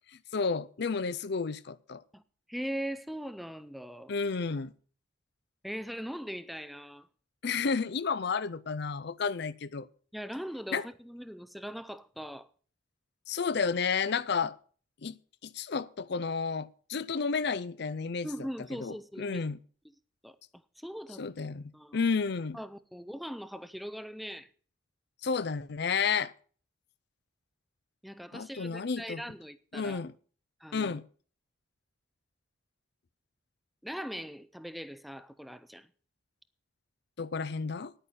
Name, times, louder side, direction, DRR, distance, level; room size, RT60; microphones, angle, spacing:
voice 1, 0.3-2.0 4.1-4.7 7.4-9.9 10.7-10.9 13.3-14.6 15.0-15.1 15.4-18.3 18.8-19.6 21.2-22.6 25.2-26.3 28.3-29.2 29.7-30.1 30.7-31.0 37.2-37.9, left 5 dB, 55° left, 0.5 m, -31 dB
voice 2, 2.5-4.1 5.6-7.1 10.1-12.5 18.2-19.4 20.2-20.4 20.8-21.3 21.7-22.0 22.5-24.5 28.0-30.0 30.6-31.0 33.8-35.9, equal, ahead, 0.5 m, -40 dB
10.0 x 8.9 x 6.6 m
head